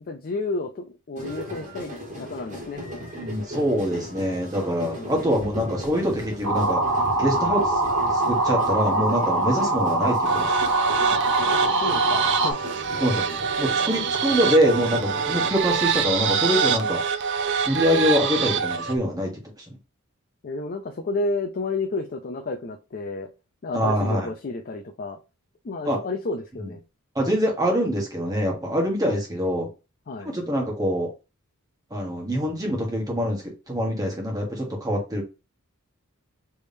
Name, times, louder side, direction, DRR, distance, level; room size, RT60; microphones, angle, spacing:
voice 1, 0.1-1.9 2.2-2.8 4.9-5.2 9.5-9.6 11.5-12.6 15.3-15.5 20.4-23.3 23.6-25.2 25.6-26.8 29.1-29.2 30.1-30.3, left 3 dB, 40° left, 0.4 m, -31 dB
sound 1, 1.2-15.6, equal, 35° right, 1.6 m, -36 dB
voice 2, 3.1-6.8 7.2-7.7 8.1-10.6 13.0-13.2 13.6-17.0 17.6-19.3 23.7-24.3 25.8-26.0 26.6-26.7 27.1-29.7 30.2-31.1 31.9-35.2, equal, 15° right, 1.3 m, -24 dB
sound 2, 6.4-12.5, right 2 dB, 80° right, 1.4 m, -23 dB
sound 3, 10.3-19.0, right 6 dB, 50° right, 0.4 m, -25 dB
3.4 x 3.2 x 2.7 m
head